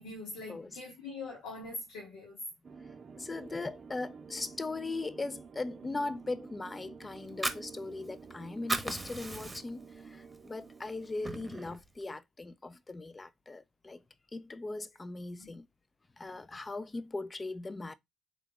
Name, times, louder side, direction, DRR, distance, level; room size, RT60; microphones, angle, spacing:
voice 1, 0.0-2.4 15.4-15.5, left 2 dB, 85° left, 1.1 m, -43 dB
sound 1, 2.6-11.5, right 5 dB, 50° right, 0.5 m, -50 dB
voice 2, 3.2-14.0 14.3-15.7 16.2-17.9, left 3 dB, 25° left, 0.4 m, -39 dB
Fire, 7.2-8.3 8.6-9.9 10.3-10.5 10.9-11.8, right 2 dB, 15° right, 0.9 m, -36 dB
3.6 x 2.3 x 3.7 m
supercardioid pair, 60°, 0 cm